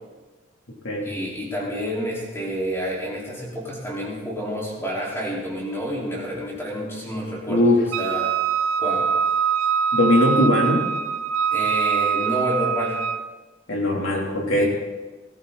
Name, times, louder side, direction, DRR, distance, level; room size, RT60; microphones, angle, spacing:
voice 1, 1.0-7.7 8.0-8.3 8.8-9.1 11.5-13.0 14.6-14.7, equal, 15° left, -5 dB, 4.8 m, -29 dB
voice 2, 7.5-7.8 9.9-10.8 13.7-14.7, left 1 dB, 80° left, -1 dB, 3.6 m, -20 dB
Wind instrument woodwind instrument, 7.9-13.3, right 7 dB, 80° right, 0.9 m, -23 dB
19.0 x 14.0 x 4.3 m, 1.2 s
head